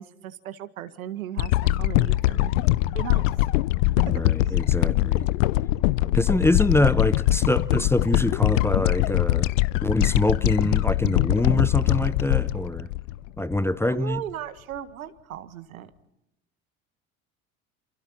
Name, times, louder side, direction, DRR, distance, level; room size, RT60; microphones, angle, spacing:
voice 1, 0.0-2.5 2.9-3.3 4.5-4.6 13.9-15.9, right 11 dB, 80° right, 1.7 m, -36 dB
sound 1, 1.4-13.7 14.2-14.3, left 17 dB, 65° left, 0.7 m, -23 dB
voice 2, 4.1-5.3 6.1-9.5 9.8-12.9 13.4-14.2, left 1 dB, 5° left, 0.8 m, -24 dB
28.5 x 28.5 x 4.4 m
hypercardioid pair, 70°, 42 cm